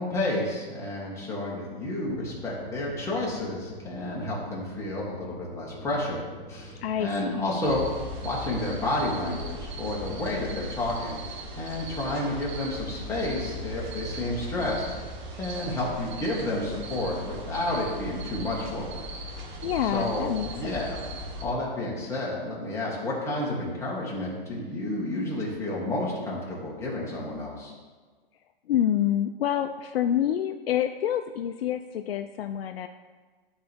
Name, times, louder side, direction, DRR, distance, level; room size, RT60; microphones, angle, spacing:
voice 1, 0.0-6.2 6.5-7.8 8.2-11.2 11.6-14.8 15.3-19.0 19.8-21.0 21.4-27.7, left 1 dB, 10° left, -5 dB, 1.8 m, -30 dB
sound 1, 2.0-8.8, left 1 dB, 10° right, 0.9 m, -46 dB
voice 2, 6.8-7.4 19.6-20.7 28.7-32.9, left 10 dB, 85° left, 6 dB, 0.5 m, -27 dB
sound 2, 7.6-21.4, right 1 dB, 50° right, 1.5 m, -38 dB
12.0 x 4.0 x 3.5 m, 1.4 s
hypercardioid pair, 145°, 29 cm